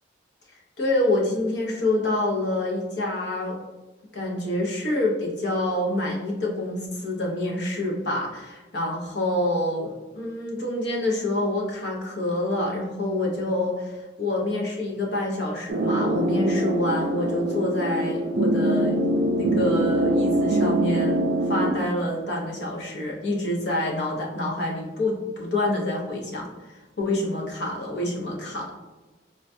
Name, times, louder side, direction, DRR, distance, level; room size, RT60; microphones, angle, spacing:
voice 1, 0.8-3.6 4.1-19.0 19.4-21.2 21.5-26.5 27.0-28.7, left 1 dB, 70° left, -2 dB, 0.7 m, -27 dB
sound 1, 15.7-21.7, right 1 dB, 65° right, 0.4 m, -23 dB
3.8 x 2.2 x 2.5 m, 1.2 s
head